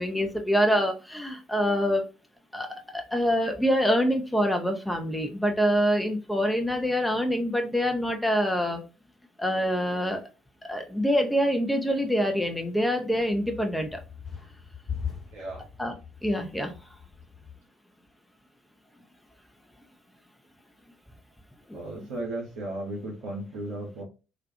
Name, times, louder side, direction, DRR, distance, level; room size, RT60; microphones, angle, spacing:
voice 1, 0.0-2.0 2.5-2.7 2.9-8.8 9.4-10.3 10.7-14.0 15.8-15.9 16.2-16.7 21.7-21.8, equal, 5° left, 0.6 m, -25 dB
sound 1, 13.3-17.6, left 7 dB, 35° left, 1.2 m, -40 dB
voice 2, 15.3-15.6 21.7-24.0, right 1 dB, 65° right, 0.7 m, -35 dB
2.4 x 2.3 x 2.5 m
figure-of-eight pair, 50°, 0 cm